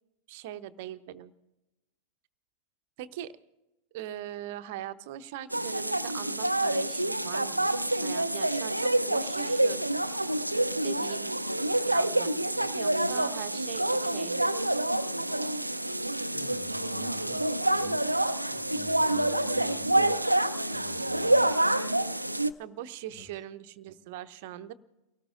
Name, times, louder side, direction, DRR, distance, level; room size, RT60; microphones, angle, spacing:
voice 1, 0.3-1.3 3.0-3.4 3.9-7.7 8.0-9.9 10.8-11.3 11.9-14.6 22.6-24.7, right 12 dB, 50° right, 12 dB, 0.7 m, -41 dB
sound 1, 5.5-22.5, right 1 dB, 85° right, 0.4 m, -27 dB
voice 2, 16.3-18.0 18.4-20.1 20.6-21.4 23.1-23.4, left 2 dB, 45° left, -1 dB, 4.8 m, -49 dB
29.0 x 18.5 x 2.5 m, 1.0 s
figure-of-eight pair, 90°, 0 cm